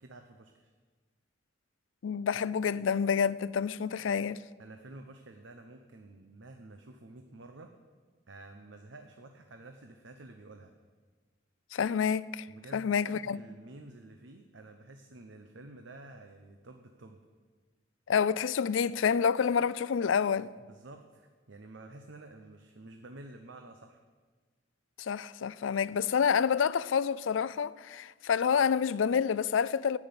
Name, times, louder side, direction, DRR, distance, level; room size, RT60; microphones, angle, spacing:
voice 1, 0.0-0.7 4.6-7.7 8.3-10.7 12.5-17.2 20.6-24.0, right 2 dB, 70° right, 0.8 m, -50 dB
voice 2, 2.0-4.4 11.7-12.5 12.7-13.4 18.1-20.5 25.0-30.0, left 7 dB, 85° left, 0.4 m, -28 dB
10.5 x 8.6 x 9.5 m
head